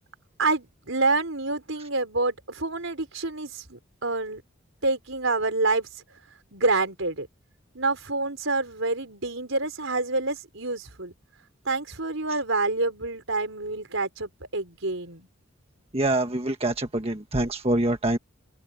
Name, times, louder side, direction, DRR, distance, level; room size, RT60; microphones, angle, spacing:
voice 1, 0.4-4.4 4.8-5.9 6.5-7.3 7.7-11.1 11.6-15.3, right 3 dB, 70° right, 4.8 m, -27 dB
voice 2, 15.9-18.2, right 1 dB, 30° right, 1.5 m, -25 dB
open air
head